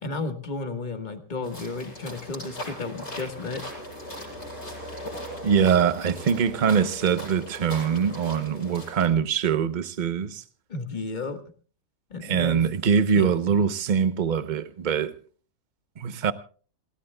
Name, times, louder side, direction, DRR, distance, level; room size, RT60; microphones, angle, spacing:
voice 1, 0.0-3.6 10.7-11.4 12.1-12.6 13.1-13.6, left 3 dB, 30° left, 1.5 m, -33 dB
sound 1, 1.4-9.1, equal, 60° left, 8.3 m, -39 dB
voice 2, 5.4-10.4 12.2-15.1 16.0-16.3, right 7 dB, 45° right, 0.6 m, -23 dB
28.0 x 17.0 x 2.2 m
omnidirectional pair, 1.8 m